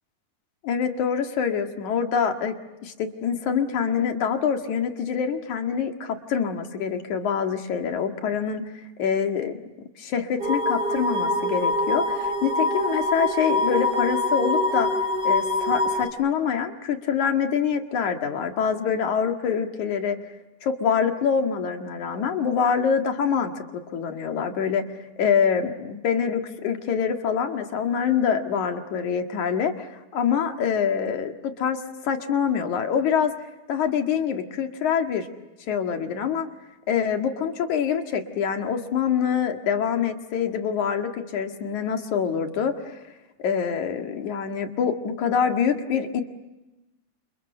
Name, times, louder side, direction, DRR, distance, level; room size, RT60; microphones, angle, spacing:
voice 1, 0.6-2.6 2.8-8.7 9.0-9.6 10.0-14.9 15.2-20.2 20.6-23.6 23.9-24.9 25.2-33.3 33.7-35.3 35.7-36.5 36.9-43.0 43.4-46.2, left 7 dB, 75° left, 4 dB, 3.3 m, -25 dB
sound 1, 10.4-16.1, left 2 dB, 15° right, 4.3 m, -24 dB
28.5 x 28.5 x 6.8 m, 1.0 s
omnidirectional pair, 3.4 m